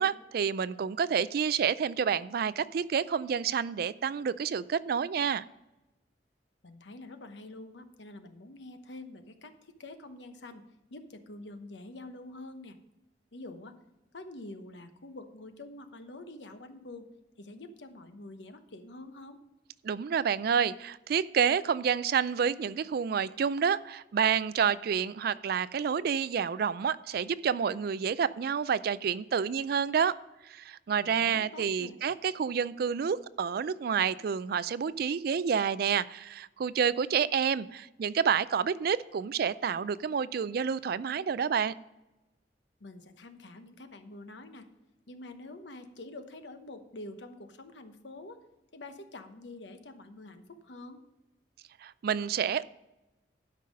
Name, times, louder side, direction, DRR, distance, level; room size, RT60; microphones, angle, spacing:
voice 1, 0.0-5.4 19.8-30.1 30.5-41.7 51.8-52.6, right 7 dB, 55° right, 18 dB, 0.3 m, -29 dB
voice 2, 6.6-10.6 10.9-12.8 13.3-13.8 14.1-17.1 17.4-19.4 31.0-32.0 42.8-44.7 45.1-48.4 48.7-51.0, left 2 dB, 75° left, 8 dB, 1.0 m, -46 dB
12.0 x 5.5 x 5.2 m, 1.0 s
head